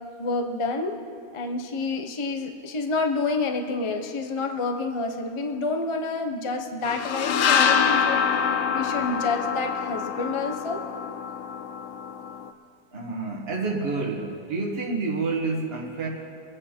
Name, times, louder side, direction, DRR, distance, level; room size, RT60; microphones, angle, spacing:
voice 1, 0.2-1.0 1.3-10.8, left 3 dB, 30° left, 4 dB, 0.7 m, -29 dB
sound 1, 6.8-12.5, left 7 dB, 65° left, 1.0 m, -25 dB
voice 2, 12.9-16.1, right 3 dB, 40° right, -1 dB, 1.7 m, -28 dB
23.5 x 8.7 x 4.4 m, 2.4 s
omnidirectional pair, 1.5 m